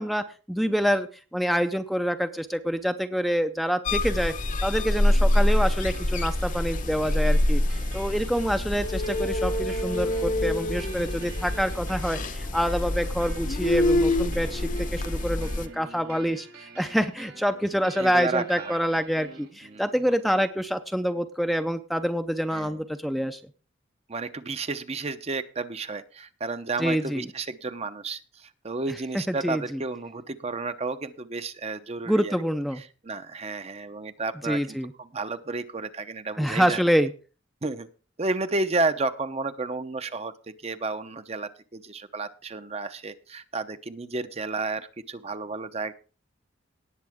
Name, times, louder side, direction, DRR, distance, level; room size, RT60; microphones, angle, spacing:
voice 1, 0.0-4.3 4.6-7.6 7.9-23.4 26.8-27.3 29.3-29.8 32.1-32.8 34.4-34.9 36.4-37.1, equal, ahead, 8 dB, 0.6 m, -26 dB
sound 1, 3.8-15.7, left 1 dB, 45° left, 0.9 m, -25 dB
sound 2, 5.0-20.0, right 4 dB, 55° right, 2.2 m, -47 dB
voice 2, 18.0-18.8 19.6-19.8 22.5-22.8 24.1-32.4 33.0-36.8 37.6-37.9 38.2-45.9, right 3 dB, 35° right, 10 dB, 0.8 m, -32 dB
18.5 x 7.4 x 3.6 m, 0.35 s
head